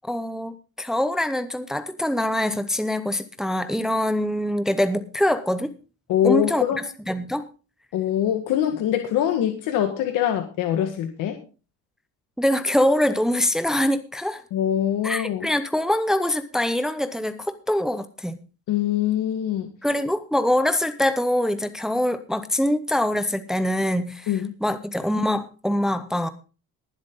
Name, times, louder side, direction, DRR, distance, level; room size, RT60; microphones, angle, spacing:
voice 1, 0.0-5.7 6.2-6.6 7.1-7.4 12.4-14.4 15.0-18.4 19.8-26.3, left 1 dB, ahead, 10 dB, 0.7 m, -24 dB
voice 2, 6.1-6.8 7.9-11.4 14.5-15.5 18.7-19.7 24.3-24.5, left 10 dB, 80° left, 5 dB, 1.7 m, -23 dB
19.5 x 7.6 x 3.8 m, 0.35 s
cardioid pair, 145°, 31 cm